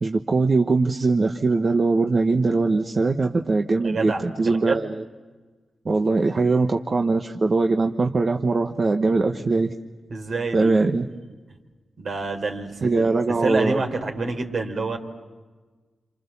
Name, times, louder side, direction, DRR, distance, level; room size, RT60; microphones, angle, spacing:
voice 1, 0.0-5.0 5.8-9.7 10.5-11.1 12.8-13.8, right 3 dB, 45° right, 4 dB, 1.2 m, -21 dB
voice 2, 3.8-4.8 10.1-10.8 12.0-15.0, right 3 dB, 65° right, 3 dB, 3.9 m, -28 dB
28.0 x 27.0 x 7.1 m, 1.3 s
cardioid pair, 60°, 0 cm